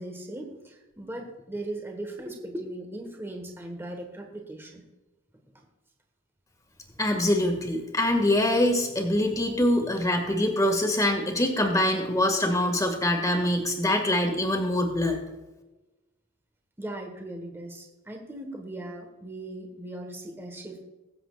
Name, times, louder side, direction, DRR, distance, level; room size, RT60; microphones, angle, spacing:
voice 1, 0.0-4.9 5.5-5.6 16.8-20.8, right 1 dB, 10° right, 3 dB, 1.4 m, -38 dB
voice 2, 7.0-15.2, left 1 dB, 15° left, 3 dB, 2.0 m, -24 dB
22.5 x 7.8 x 2.5 m, 1.1 s
head